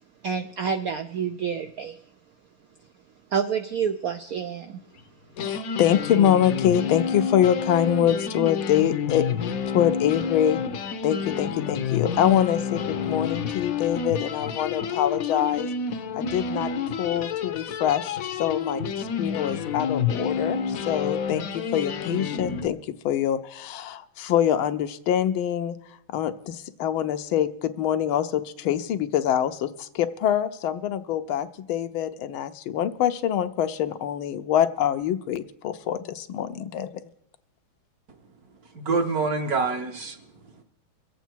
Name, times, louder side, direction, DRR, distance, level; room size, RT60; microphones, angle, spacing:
voice 1, 0.2-2.0 3.3-4.8, right 7 dB, 80° right, 7 dB, 0.7 m, -28 dB
sound 1, 5.0-5.1 5.3-22.7, left 6 dB, 60° left, 0.9 m, -29 dB
voice 2, 5.4-10.6 11.0-15.7 16.2-16.7 17.0-22.8 23.0-25.8 26.1-37.0, left 10 dB, 85° left, 9 dB, 1.5 m, -25 dB
voice 3, 38.7-40.6, right 4 dB, 55° right, 5 dB, 1.4 m, -27 dB
23.5 x 8.1 x 4.5 m, 0.70 s
omnidirectional pair, 2.2 m